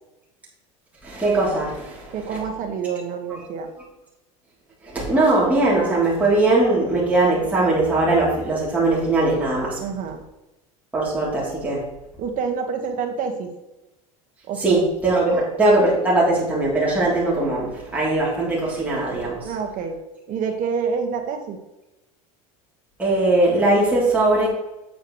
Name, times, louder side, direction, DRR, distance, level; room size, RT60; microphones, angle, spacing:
voice 1, 1.0-2.1 4.9-9.8 10.9-11.8 14.6-19.5 23.0-24.5, right 2 dB, 10° right, -7 dB, 3.4 m, -20 dB
voice 2, 2.1-3.7 9.8-10.2 12.2-13.5 14.5-14.8 15.3-15.5 19.4-20.0 20.3-21.6, right 6 dB, 45° right, 3 dB, 1.7 m, -27 dB
9.1 x 7.9 x 3.3 m, 1.0 s
supercardioid pair, 115°, 18 cm